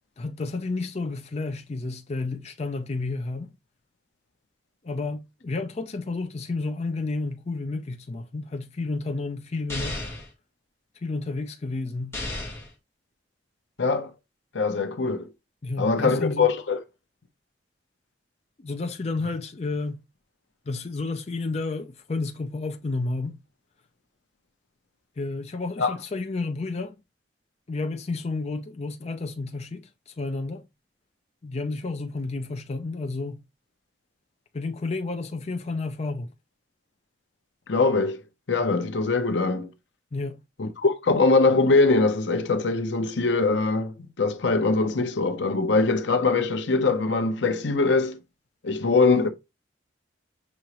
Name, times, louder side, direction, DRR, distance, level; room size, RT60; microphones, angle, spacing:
voice 1, 0.2-3.5 4.8-10.1 11.0-12.2 15.6-16.5 18.6-20.0 20.7-23.4 25.2-27.0 27.7-30.6 31.4-33.4 34.5-36.3 40.1-40.4, left 3 dB, 35° left, 0.5 m, -31 dB
sound 1, 9.7-10.3 12.1-12.7, left 2 dB, 15° left, 1.4 m, -33 dB
voice 2, 13.8-14.1 14.5-15.3 15.8-16.8 25.8-25.9 37.7-38.2 38.5-39.7 40.6-48.2 48.6-49.3, left 3 dB, 80° left, 0.7 m, -22 dB
6.1 x 3.0 x 2.9 m
head